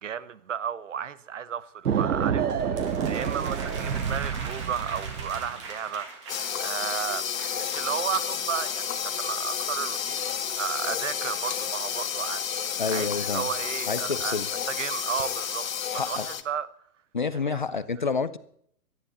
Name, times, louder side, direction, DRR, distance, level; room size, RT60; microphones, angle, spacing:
voice 1, 0.0-7.2 7.5-14.4 14.7-15.7 15.9-16.7 17.3-17.6, right 8 dB, 55° right, 1.1 m, -33 dB
sound 1, 1.9-5.6, right 7 dB, 90° right, 1.6 m, -28 dB
sound 2, 2.5-7.7, right 4 dB, 20° right, 1.7 m, -41 dB
sound 3, 6.3-16.4, left 8 dB, 65° left, 1.6 m, -31 dB
voice 2, 12.8-13.5 13.9-14.5 15.9-16.3 17.1-18.4, left 5 dB, 35° left, 0.6 m, -29 dB
18.0 x 13.0 x 4.2 m
hypercardioid pair, 180°, 44 cm